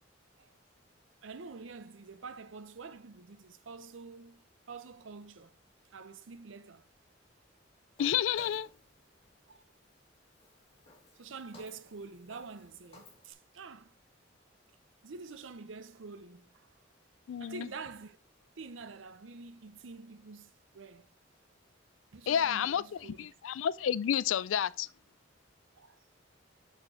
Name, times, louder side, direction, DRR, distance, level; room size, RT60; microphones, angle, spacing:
voice 1, 1.2-5.6 5.9-6.8 9.5-9.7 11.2-13.9 15.0-16.7 17.4-18.2 18.6-21.1 22.1-23.2 25.8-26.0, right 4 dB, 75° right, 0.6 m, -47 dB
voice 2, 8.0-8.7 17.3-17.7 22.3-22.8 23.2-24.9, left 9 dB, 80° left, 0.3 m, -30 dB
Walk footsteps, 8.0-13.3, left 1 dB, 30° left, 2.2 m, -58 dB
6.7 x 4.7 x 4.1 m
head